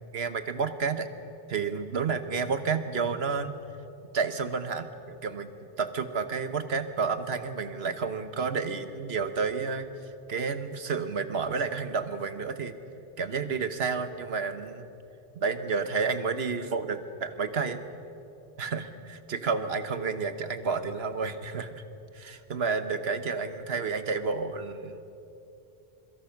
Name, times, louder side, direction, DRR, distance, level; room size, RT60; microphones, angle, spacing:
voice 1, 0.1-1.1 1.5-3.5 4.1-5.5 5.8-9.9 10.3-12.7 13.2-14.9 15.3-17.8 18.6-21.8 22.1-25.0, right 5 dB, 75° right, 10 dB, 1.4 m, -30 dB
26.0 x 23.0 x 6.0 m, 2.9 s
omnidirectional pair, 1.0 m